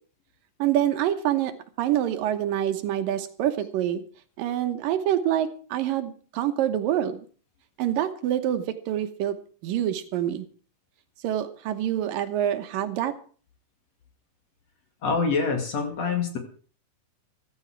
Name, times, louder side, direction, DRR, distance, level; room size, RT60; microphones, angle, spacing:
voice 1, 0.6-4.0 4.4-7.3 7.8-9.4 9.6-10.5 11.2-13.2, right 11 dB, 75° right, 9 dB, 2.7 m, -26 dB
voice 2, 15.0-16.4, left 4 dB, 50° left, 5 dB, 3.1 m, -25 dB
15.0 x 14.0 x 4.6 m, 0.42 s
omnidirectional pair, 4.1 m